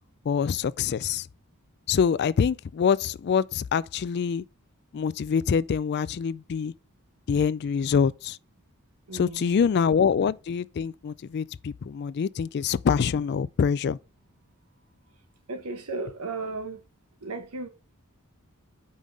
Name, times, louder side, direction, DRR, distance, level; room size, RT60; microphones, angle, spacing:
voice 1, 0.3-1.3 1.9-4.4 4.9-6.7 7.3-8.4 9.1-14.0, left 6 dB, 50° left, 0.3 m, -25 dB
voice 2, 9.1-9.6 15.5-16.8 17.2-17.7, right 3 dB, 80° right, 1.1 m, -35 dB
5.5 x 5.3 x 6.2 m
head